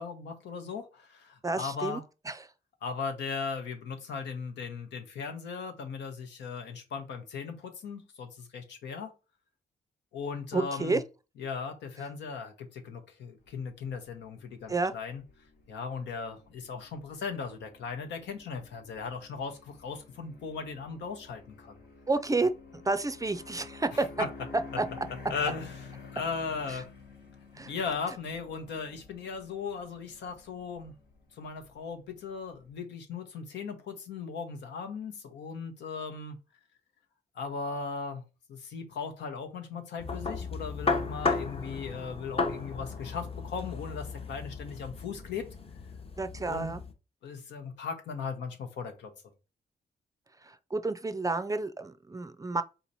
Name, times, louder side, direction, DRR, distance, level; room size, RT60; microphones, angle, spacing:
voice 1, 0.0-2.0 2.8-9.1 10.1-11.0 11.4-15.2 15.7-21.8 23.9-24.3 25.3-25.9 26.1-26.9 27.6-30.9 31.3-36.4 37.3-38.2 38.5-45.5 46.4-46.7 47.2-49.1, left 5 dB, 90° left, 0.9 m, -37 dB
voice 2, 1.4-2.0 2.3-2.4 10.5-11.0 14.7-14.9 22.1-24.1 24.8-24.9 27.6-27.7 46.2-46.8 50.4-52.6, right 3 dB, 20° right, 0.4 m, -30 dB
sound 1, 13.5-32.8, left 4 dB, 70° left, 1.2 m, -51 dB
sound 2, 40.0-46.9, left 4 dB, 35° left, 0.7 m, -34 dB
3.9 x 2.9 x 4.1 m
cardioid pair, 80°, 18 cm